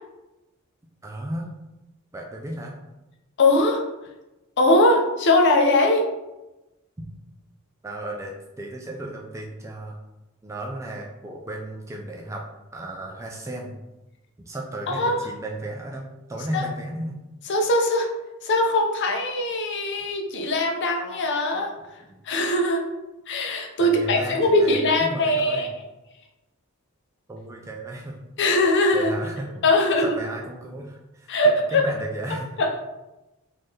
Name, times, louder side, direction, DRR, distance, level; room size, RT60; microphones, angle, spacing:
voice 1, 1.0-1.5 2.1-2.8 7.0-7.1 7.8-10.0 10.4-12.4 12.7-13.7 14.4-17.2 23.8-25.7 27.3-28.2 28.9-32.5, right 1 dB, 15° right, -1 dB, 0.3 m, -34 dB
voice 2, 3.4-3.8 4.6-6.1 14.9-15.2 16.5-16.6 17.5-18.1 18.4-21.7 22.2-22.8 23.3-25.7 28.4-29.1 29.6-30.1 31.3-31.8 32.6-32.8, left 1 dB, 55° left, 2 dB, 0.6 m, -21 dB
3.7 x 2.6 x 3.2 m, 1.0 s
head